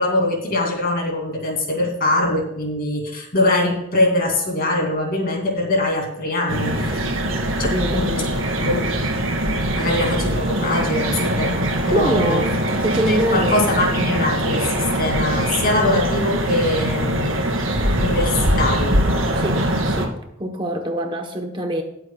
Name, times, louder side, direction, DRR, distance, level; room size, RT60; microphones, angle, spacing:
voice 1, 0.0-7.1 7.6-8.3 8.6-8.8 9.8-12.5 13.1-17.4 18.0-19.0, left 1 dB, 45° left, 2 dB, 2.6 m, -22 dB
sound 1, 6.5-20.1, right 1 dB, 75° right, 2.3 m, -22 dB
voice 2, 7.6-8.1 11.9-12.6 12.8-13.7 19.3-20.1 20.4-21.8, right 1 dB, 20° right, 4 dB, 1.0 m, -24 dB
20.0 x 8.0 x 2.3 m, 0.82 s
head